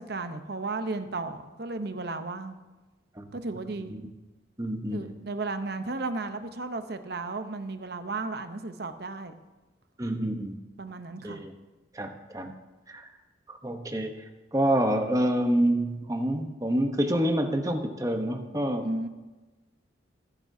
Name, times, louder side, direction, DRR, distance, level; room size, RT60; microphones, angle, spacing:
voice 1, 0.0-2.6 3.3-4.0 4.9-9.3 10.8-11.4 18.8-19.1, right 3 dB, 55° right, 9 dB, 0.8 m, -34 dB
voice 2, 4.6-5.1 10.0-10.6 11.2-11.5 11.9-12.5 12.9-13.1 13.5-14.1 14.5-18.9, right 1 dB, 15° right, 5 dB, 0.9 m, -27 dB
21.0 x 9.8 x 2.7 m, 1.2 s
head